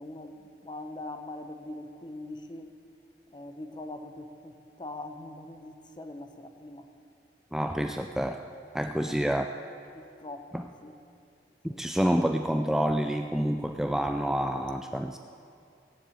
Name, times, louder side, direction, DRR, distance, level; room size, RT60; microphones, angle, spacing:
voice 1, 0.0-2.7 3.3-6.9 8.9-9.3 9.9-10.9 11.7-11.8, left 2 dB, 25° left, 7 dB, 0.9 m, -42 dB
voice 2, 7.5-8.5 8.7-9.5 10.5-10.6 11.6-15.2, equal, 5° right, 5 dB, 0.3 m, -28 dB
17.0 x 7.6 x 8.5 m, 2.5 s
head